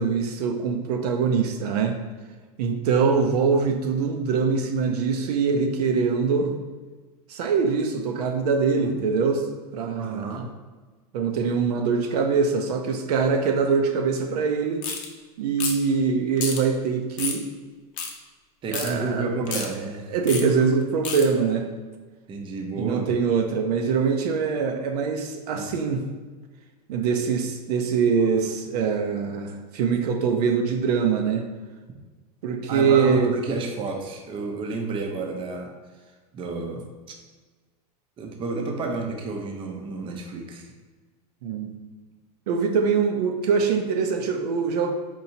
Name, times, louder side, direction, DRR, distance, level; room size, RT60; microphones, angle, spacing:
voice 1, 0.0-2.0 2.6-6.5 7.3-9.5 9.7-10.5 11.1-14.8 15.4-17.5 18.7-19.6 20.1-21.7 22.8-26.0 26.9-31.5 32.4-33.3 41.4-41.7 42.5-44.9, right 5 dB, 75° right, 4 dB, 0.5 m, -23 dB
voice 2, 10.0-10.5 18.6-20.1 22.3-23.1 25.5-25.6 32.7-35.7 36.3-36.9 38.2-40.7, right 3 dB, 25° right, 2 dB, 0.5 m, -30 dB
sound 1, 14.8-15.1 15.6-15.9 16.4-16.6 17.2-17.4 18.0-18.1 18.7-18.9 19.5-19.7 20.3-20.4 21.1-21.3, left 5 dB, 40° left, 0.6 m, -29 dB
4.4 x 2.7 x 2.7 m, 1.4 s
supercardioid pair, 120°, 20 cm